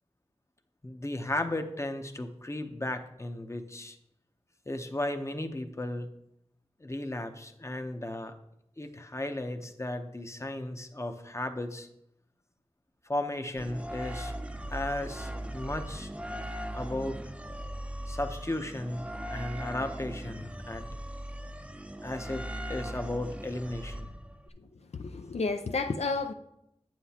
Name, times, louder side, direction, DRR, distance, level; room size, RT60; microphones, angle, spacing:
voice 1, 0.8-4.0 4.7-6.1 6.8-8.3 8.8-11.9 13.0-14.3 14.7-16.1 16.7-17.2 18.1-19.0 19.3-20.8 22.0-24.1, left 1 dB, 25° left, 6 dB, 0.7 m, -35 dB
sound 1, 13.6-24.5, equal, 10° right, 0.6 m, -39 dB
voice 2, 24.9-26.3, left 4 dB, 75° left, 6 dB, 0.5 m, -31 dB
9.0 x 7.6 x 2.8 m, 0.78 s
wide cardioid pair, 55°, 11 cm